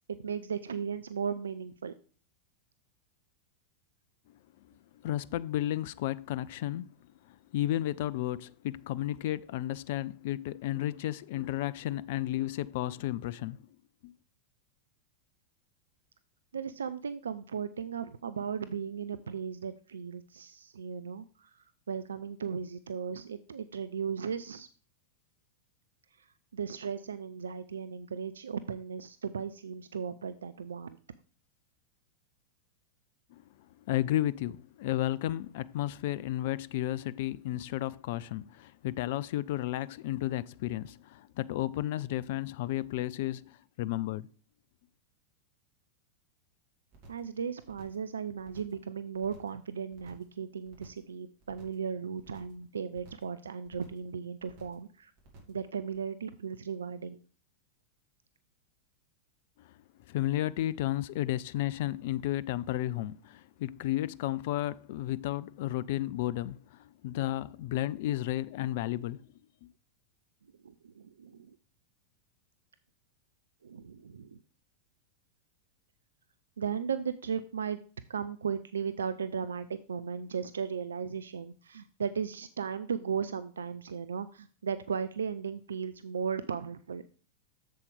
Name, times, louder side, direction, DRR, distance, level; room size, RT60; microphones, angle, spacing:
voice 1, 0.1-1.9 16.5-24.7 26.5-31.0 47.1-55.1 55.5-57.2 70.6-71.6 73.6-74.4 76.6-77.8 78.1-87.0, right 6 dB, 70° right, 0.4 m, -36 dB
voice 2, 5.0-6.9 7.3-13.6 14.0-14.1 33.3-33.4 33.9-44.3 59.6-59.7 60.1-69.2 69.6-69.7, left 14 dB, 50° left, 0.3 m, -33 dB
sound 1, 46.9-47.3 47.6-48.1 48.4-48.8 49.1-49.6 49.9-50.3 50.6-51.1 51.4-51.9 52.2-52.6 52.9-53.3 53.6-54.1 54.4-54.9 55.2-55.6 55.9-56.0, right 2 dB, 50° right, 2.7 m, -55 dB
7.6 x 7.4 x 3.4 m
figure-of-eight pair, 90°, 0 cm